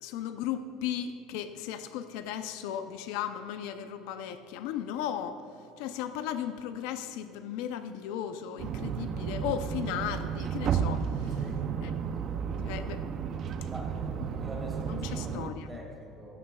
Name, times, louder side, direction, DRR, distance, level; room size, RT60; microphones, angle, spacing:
voice 1, 0.0-5.4 5.8-11.4 11.8-11.9 12.6-13.0 14.9-15.7, left 9 dB, 80° left, 9 dB, 0.6 m, -36 dB
sound 1, 8.6-15.5, right 7 dB, 35° right, 0.6 m, -33 dB
voice 2, 11.3-12.0 12.7-12.8 13.7-14.0 14.4-15.4 15.7-16.4, right 1 dB, 10° right, -1 dB, 2.6 m, -45 dB
15.5 x 15.5 x 2.4 m, 2.9 s
cardioid pair, 165°, 0 cm